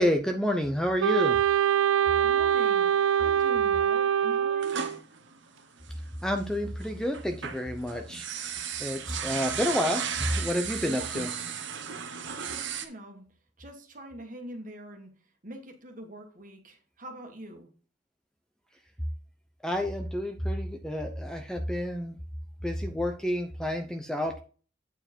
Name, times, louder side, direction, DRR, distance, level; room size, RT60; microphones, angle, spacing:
voice 1, 0.0-1.4 6.2-8.5 8.8-11.3 19.6-22.2 22.6-24.4, left 1 dB, 5° left, 4 dB, 0.6 m, -29 dB
Wind instrument woodwind instrument, 1.0-5.0, right 9 dB, 85° right, 0.4 m, -24 dB
voice 2, 2.1-5.0 10.8-11.2 12.2-13.2 13.6-15.1 15.4-17.7, right 1 dB, 40° right, 3 dB, 1.7 m, -44 dB
sound 1, 4.6-6.4 6.8-12.9, right 7 dB, 65° right, 1.1 m, -35 dB
8.9 x 4.7 x 4.4 m, 0.38 s
head